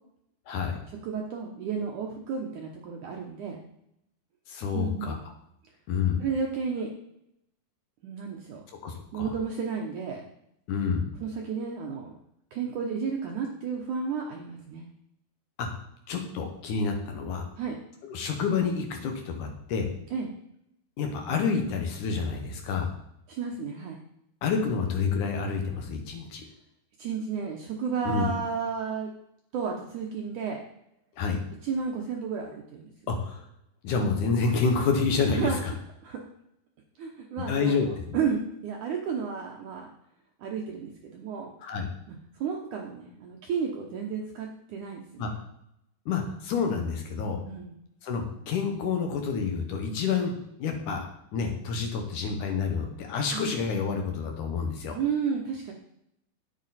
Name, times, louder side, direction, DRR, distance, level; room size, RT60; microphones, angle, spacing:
voice 1, 0.5-0.8 4.5-5.2 5.9-6.2 8.8-9.3 10.7-11.1 15.6-15.7 16.1-17.5 18.1-19.9 21.0-22.9 24.4-26.4 28.0-28.3 31.2-31.4 33.1-33.4 33.8-35.7 37.5-37.9 41.6-41.9 45.2-45.3 46.1-47.4 48.0-51.1 51.3-55.0, left 5 dB, 65° left, 4 dB, 2.1 m, -28 dB
voice 2, 1.0-3.6 4.7-5.2 6.2-6.9 8.0-8.6 9.1-10.2 11.2-12.1 12.5-14.9 17.6-17.8 20.1-20.3 23.3-24.0 27.0-29.1 29.5-30.6 31.6-32.9 35.3-35.6 36.0-36.2 37.0-39.9 40.4-41.5 42.1-45.3 47.5-47.8 53.3-53.5 54.9-55.7, right 6 dB, 85° right, 1 dB, 1.7 m, -32 dB
10.5 x 8.4 x 4.2 m, 0.80 s
omnidirectional pair, 4.9 m